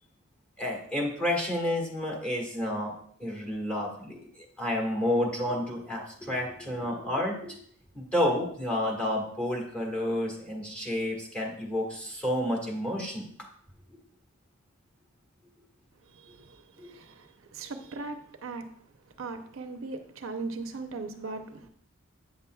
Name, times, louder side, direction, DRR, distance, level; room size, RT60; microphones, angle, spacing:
voice 1, 0.6-2.9 3.2-7.6 7.9-13.3 16.8-16.9, left 1 dB, 5° left, 1.6 m, -30 dB
voice 2, 16.0-21.7, right 3 dB, 75° right, 0.6 m, -39 dB
8.6 x 6.9 x 2.3 m
head